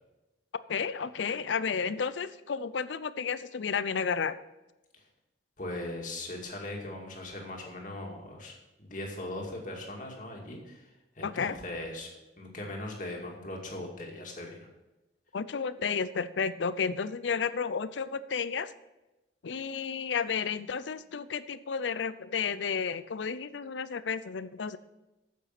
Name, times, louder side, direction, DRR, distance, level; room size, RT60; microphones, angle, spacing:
voice 1, 0.7-4.4 11.2-11.6 15.3-18.7 19.4-24.8, left 6 dB, 80° left, 15 dB, 0.5 m, -32 dB
voice 2, 5.6-10.9 11.2-12.1 12.4-14.7, left 1 dB, 45° left, 0 dB, 2.2 m, -39 dB
9.1 x 7.5 x 5.9 m, 1.0 s
head